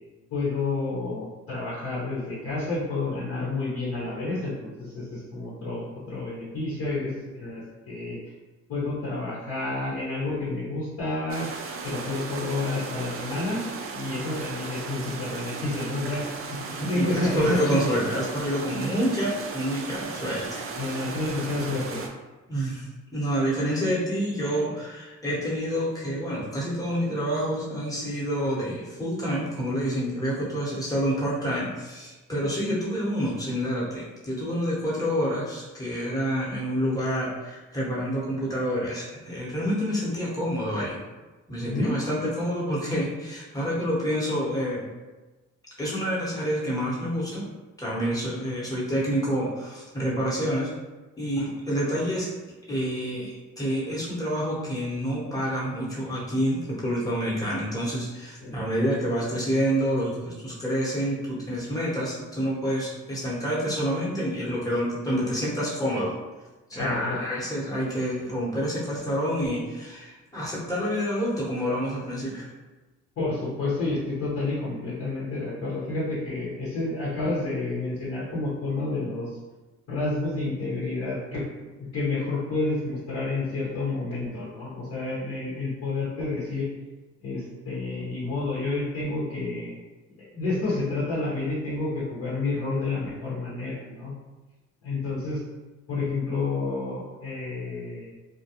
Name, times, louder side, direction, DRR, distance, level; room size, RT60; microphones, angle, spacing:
voice 1, 0.3-8.2 8.7-11.5 11.8-13.7 13.9-17.8 20.8-22.0 41.6-42.0 58.4-58.5 66.7-67.2 73.2-79.3 79.9-81.4 81.9-86.7 87.2-89.7 90.2-94.1 94.8-95.4 95.9-98.1, left 2 dB, 55° left, -8 dB, 1.0 m, -29 dB
sound 1, 11.3-22.1, right 4 dB, 45° right, 0.4 m, -36 dB
voice 2, 16.8-20.6 22.5-41.0 41.5-44.8 45.8-47.4 47.8-50.7 51.2-52.3 52.7-66.1 66.7-72.5, equal, 10° left, -7 dB, 1.0 m, -28 dB
2.3 x 2.2 x 2.8 m, 1.2 s
cardioid pair, 90°, 30 cm